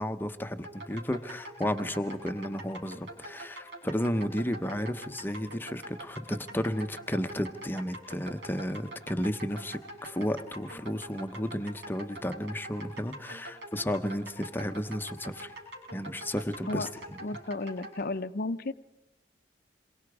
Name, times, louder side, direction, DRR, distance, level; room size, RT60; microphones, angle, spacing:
voice 1, 0.0-15.5 15.9-17.2, equal, 10° left, 8 dB, 0.8 m, -33 dB
sound 1, 0.6-18.0, right 1 dB, 85° right, 6.6 m, -44 dB
voice 2, 17.2-18.7, left 2 dB, 55° left, 13 dB, 0.7 m, -33 dB
27.5 x 22.5 x 4.8 m, 0.93 s
head